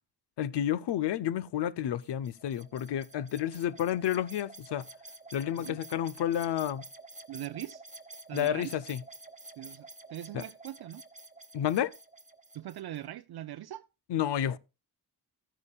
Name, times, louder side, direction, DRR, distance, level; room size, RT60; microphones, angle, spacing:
voice 1, 0.4-4.9 5.3-6.9 8.3-9.0 10.3-10.4 11.5-11.9 14.1-14.6, left 10 dB, 85° left, 0.6 m, -30 dB
sound 1, 2.0-13.0, right 2 dB, 20° right, 1.2 m, -50 dB
voice 2, 7.3-7.8 8.3-8.7 9.6-11.0 12.5-13.9, right 13 dB, 70° right, 0.5 m, -41 dB
13.5 x 9.6 x 2.3 m
cardioid pair, 55°, 40 cm